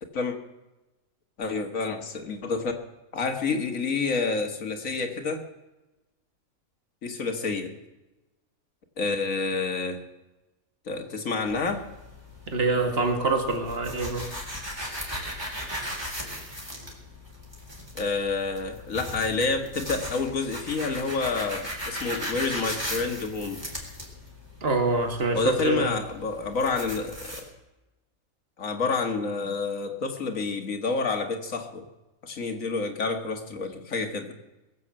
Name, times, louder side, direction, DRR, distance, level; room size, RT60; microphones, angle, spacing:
voice 1, 1.4-2.7 3.1-5.4 7.0-7.7 9.0-10.0 10.9-11.9 17.9-23.6 25.3-27.5 28.6-31.8 32.2-34.3, left 4 dB, 65° left, 5 dB, 2.1 m, -28 dB
sound 1, 11.5-27.4, equal, 15° right, 3.7 m, -38 dB
voice 2, 12.5-14.3 24.6-25.9, right 3 dB, 40° right, 4 dB, 2.2 m, -25 dB
21.5 x 7.6 x 7.6 m, 1.0 s
omnidirectional pair, 1.5 m